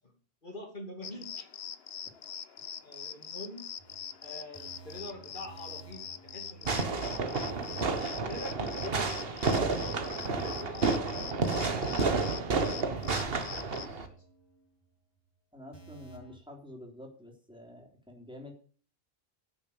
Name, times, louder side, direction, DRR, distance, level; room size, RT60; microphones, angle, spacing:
voice 1, 0.4-1.5 2.8-3.7 4.2-7.6 8.1-11.1 11.6-14.2, left 1 dB, 50° left, 1 dB, 2.9 m, -46 dB
sound 1, 1.0-13.9, left 8 dB, 70° left, 1.1 m, -44 dB
sound 2, 3.8-9.3 9.6-9.8 10.2-12.1 12.4-12.5 13.0-14.9 15.2-15.3 15.7-16.4, right 4 dB, 20° left, 2.5 m, -53 dB
Fireworks, 6.7-14.1, right 4 dB, 65° right, 1.6 m, -31 dB
voice 2, 15.5-18.5, left 1 dB, 5° right, 1 dB, 3.5 m, -48 dB
12.0 x 7.1 x 8.6 m, 0.43 s
omnidirectional pair, 1.1 m